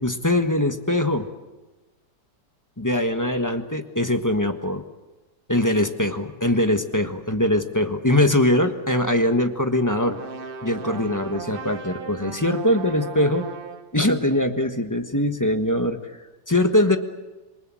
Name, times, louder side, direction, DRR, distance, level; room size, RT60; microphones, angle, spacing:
voice 1, 0.0-1.3 2.8-4.8 5.5-10.2 10.6-13.5 13.9-16.0 16.5-17.0, left 1 dB, 10° left, 6 dB, 1.2 m, -22 dB
sound 1, 10.0-14.0, right 5 dB, 35° right, 1.1 m, -37 dB
27.5 x 22.0 x 7.7 m, 1.2 s
omnidirectional pair, 1.8 m